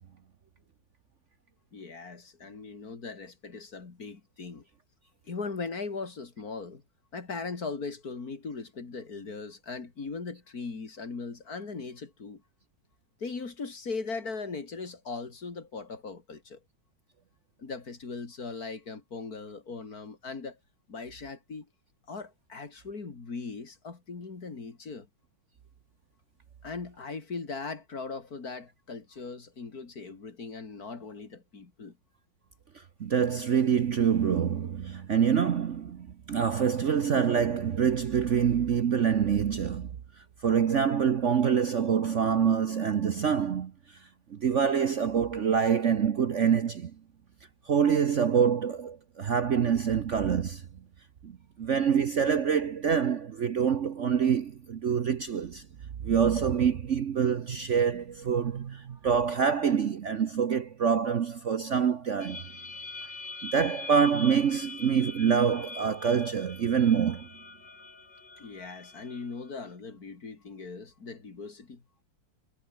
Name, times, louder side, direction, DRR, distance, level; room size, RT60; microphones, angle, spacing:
voice 1, 1.7-4.6 5.3-6.8 7.1-12.4 13.2-16.6 17.6-20.6 20.9-21.7 22.1-25.1 26.6-32.0 68.4-71.8, left 4 dB, 55° left, 3.2 m, -39 dB
voice 2, 33.0-39.9 40.4-43.7 44.3-46.9 47.7-50.6 51.2-55.7 56.0-62.4 63.4-67.3, right 7 dB, 50° right, 1.0 m, -26 dB
sound 1, 62.2-69.7, left 3 dB, 70° left, 5.1 m, -43 dB
omnidirectional pair, 2.0 m